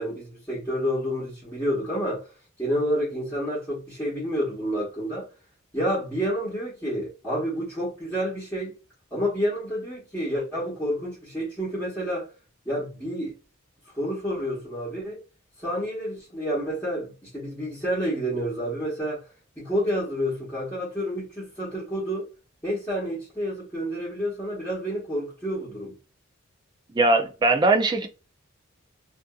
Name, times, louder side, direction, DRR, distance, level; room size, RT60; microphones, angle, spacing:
voice 1, 0.0-2.2 2.6-5.3 5.7-8.8 9.1-12.3 12.6-13.3 13.9-15.2 15.6-19.2 19.6-22.3 22.6-25.9, equal, 10° left, 1.0 m, -29 dB
voice 2, 26.9-28.1, right 2 dB, 20° right, 0.3 m, -20 dB
2.5 x 2.4 x 2.3 m
head